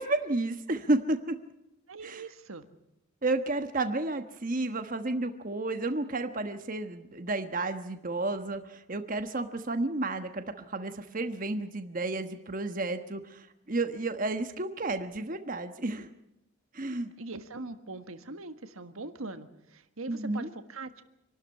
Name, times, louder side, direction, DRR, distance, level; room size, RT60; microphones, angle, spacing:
voice 1, 0.0-1.3 2.0-2.2 3.2-16.1 16.7-17.1 20.1-20.5, right 2 dB, 40° right, 7 dB, 1.2 m, -31 dB
voice 2, 1.9-2.6 4.1-4.2 17.2-20.9, right 3 dB, 80° right, 9 dB, 1.6 m, -42 dB
26.5 x 12.5 x 9.7 m, 0.86 s
head